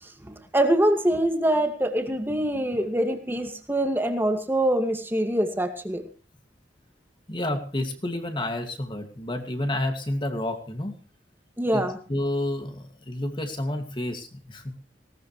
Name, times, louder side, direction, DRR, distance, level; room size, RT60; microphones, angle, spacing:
voice 1, 0.0-6.0 11.6-12.0, right 1 dB, 10° right, 5 dB, 2.1 m, -24 dB
voice 2, 7.3-11.0 11.7-11.8 12.1-14.7, left 1 dB, 25° left, 5 dB, 2.4 m, -30 dB
19.5 x 18.0 x 3.3 m, 0.36 s
head